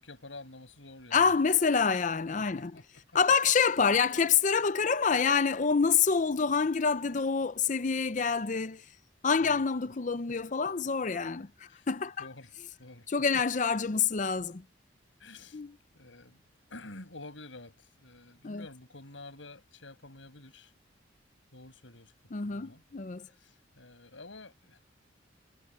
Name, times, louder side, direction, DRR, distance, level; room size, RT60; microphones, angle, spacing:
voice 1, 0.0-1.3 2.5-3.0 9.4-9.6 11.7-11.9 12.2-12.5 12.8-13.1 13.3-13.4 15.2-15.6 15.9-16.4 16.7-20.7 21.5-22.1 22.4-22.8 23.3-24.8, left 2 dB, 85° left, 6.1 m, -49 dB
voice 2, 1.1-2.7 3.1-8.8 9.2-12.3 13.1-14.6 15.5-15.8 18.4-18.7 22.3-23.3, left 5 dB, 40° left, 0.6 m, -27 dB
head